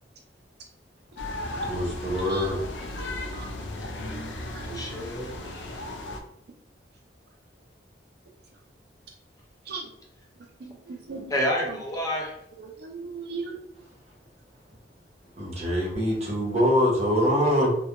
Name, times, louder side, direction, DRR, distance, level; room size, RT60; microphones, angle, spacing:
sound 1, 1.2-6.2, left 1 dB, 85° left, 0.4 m, -35 dB
voice 1, 1.4-2.6 15.4-17.7, equal, 40° right, -3 dB, 0.8 m, -24 dB
voice 2, 3.0-3.5 4.1-4.3 4.6-4.8 9.7-9.8 10.6-11.3 12.8-13.6, right 4 dB, 60° right, 1 dB, 0.4 m, -38 dB
voice 3, 4.6-5.9 11.3-12.4, equal, 20° left, -1 dB, 0.5 m, -30 dB
2.3 x 2.1 x 2.8 m, 0.74 s
head